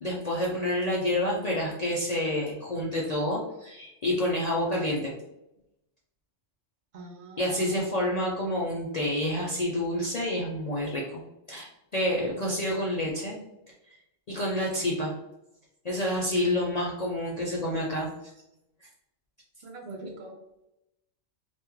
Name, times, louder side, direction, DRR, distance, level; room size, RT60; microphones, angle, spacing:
voice 1, 0.0-5.1 7.4-11.2 11.5-13.4 13.9-14.0 14.3-15.1 15.8-18.1 18.8-18.9, left 1 dB, 50° left, -3 dB, 0.5 m, -28 dB
voice 2, 6.9-7.8 19.6-20.4, right 3 dB, 60° right, 1 dB, 0.9 m, -43 dB
3.4 x 2.5 x 3.0 m, 0.88 s
omnidirectional pair, 1.3 m